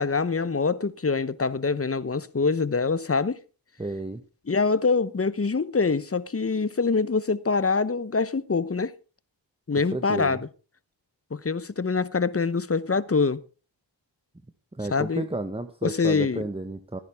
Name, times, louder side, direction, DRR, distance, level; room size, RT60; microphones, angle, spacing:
voice 1, 0.0-3.4 4.5-8.9 9.7-10.4 11.3-13.4 14.9-15.3 15.8-16.5, left 4 dB, 30° left, 0.9 m, -25 dB
voice 2, 3.8-4.2 9.9-10.4 14.7-17.0, right 2 dB, 10° right, 1.2 m, -32 dB
14.5 x 10.0 x 3.5 m
cardioid pair, 45°, 45 cm